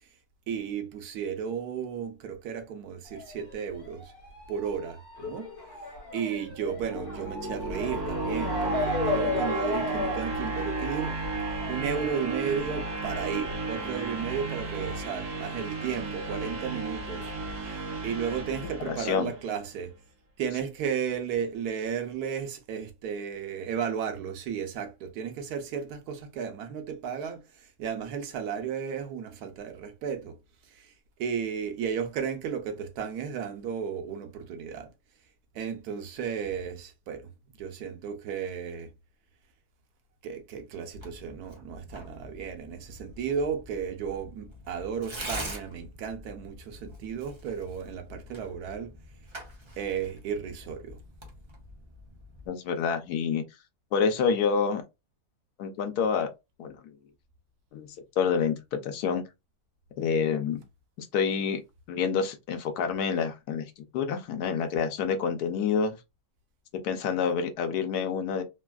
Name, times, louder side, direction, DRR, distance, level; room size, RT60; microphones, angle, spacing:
voice 1, 0.5-4.1 4.5-5.5 6.1-11.2 11.7-19.9 20.4-30.4 30.6-30.9 31.2-34.9 35.5-37.3 37.6-38.9 40.2-49.0 49.8-51.0, right 7 dB, 85° right, 1.2 m, -34 dB
Motor vehicle (road) / Siren, 3.1-16.1 16.3-17.5 18.2-18.3 18.5-18.6, left 3 dB, 45° left, 1.6 m, -36 dB
sound 1, 6.6-19.6, right 3 dB, 65° right, 1.2 m, -34 dB
voice 2, 18.9-19.3 52.5-53.4 53.9-54.8 55.6-56.3 56.6-56.8 57.7-57.9 58.2-58.5 58.8-59.2 60.0-60.6 61.0-61.6 61.9-63.6 63.9-65.9 66.8-68.4, left 6 dB, 90° left, 1.2 m, -27 dB
Tearing, 40.9-52.5, equal, 30° right, 0.5 m, -44 dB
3.3 x 2.3 x 2.3 m
omnidirectional pair, 1.6 m